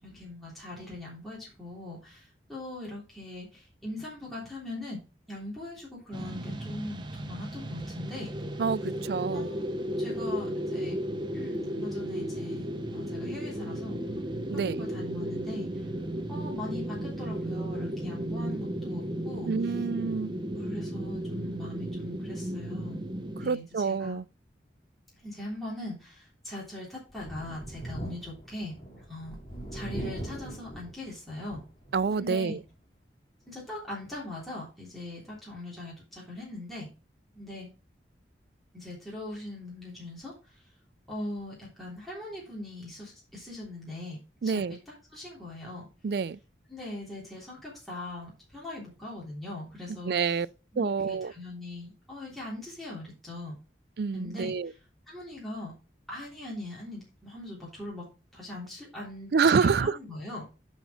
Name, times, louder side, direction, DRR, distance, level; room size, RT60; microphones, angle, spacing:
voice 1, 0.0-5.0 5.3-8.3 9.3-11.0 11.3-14.3 14.5-15.8 16.3-19.5 20.5-24.2 25.2-28.7 29.1-29.4 29.7-31.6 32.1-32.6 33.4-36.9 37.3-37.7 38.7-40.3 41.1-44.8 45.1-45.9 46.7-50.2 50.7-53.6 54.1-54.5 55.1-55.7 56.1-58.1 58.3-60.5, left 2 dB, ahead, 3.3 m, -41 dB
sound 1, 6.1-23.5, equal, 25° right, 0.8 m, -34 dB
voice 2, 8.6-9.5 14.5-14.9 19.5-20.3 23.4-24.2 31.9-32.6 44.4-44.8 46.0-46.4 50.1-50.5 50.8-51.3 54.0-54.7 59.3-60.0, right 5 dB, 60° right, 0.4 m, -27 dB
Thunder, 27.1-32.2 32.6-32.7 34.1-34.2, right 1 dB, 25° left, 2.3 m, -40 dB
11.0 x 4.5 x 4.3 m
head